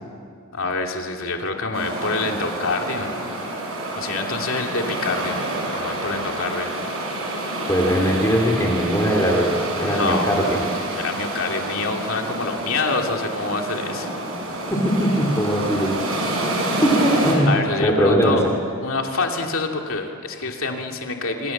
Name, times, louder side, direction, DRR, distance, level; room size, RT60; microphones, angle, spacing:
voice 1, 0.5-3.1 3.9-5.4 5.7-6.7 9.8-14.1 17.5-18.5 18.8-21.5, left 3 dB, 65° left, 2 dB, 2.7 m, -26 dB
sound 1, 1.7-17.4, right 1 dB, 65° right, 6.6 m, -28 dB
voice 2, 7.7-10.6 14.7-16.0 16.8-17.5 17.8-18.4, equal, 15° left, -1 dB, 2.9 m, -20 dB
26.5 x 25.0 x 7.4 m, 2.3 s
head